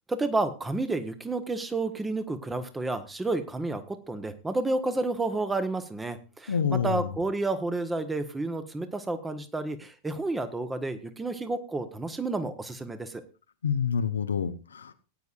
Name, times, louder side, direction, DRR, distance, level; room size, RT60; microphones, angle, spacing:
voice 1, 0.1-13.2, right 2 dB, 10° right, 9 dB, 1.2 m, -30 dB
voice 2, 6.5-7.1 13.6-14.9, left 7 dB, 70° left, 10 dB, 0.8 m, -27 dB
18.5 x 9.5 x 2.5 m, 0.33 s
figure-of-eight pair, 90°, 0 cm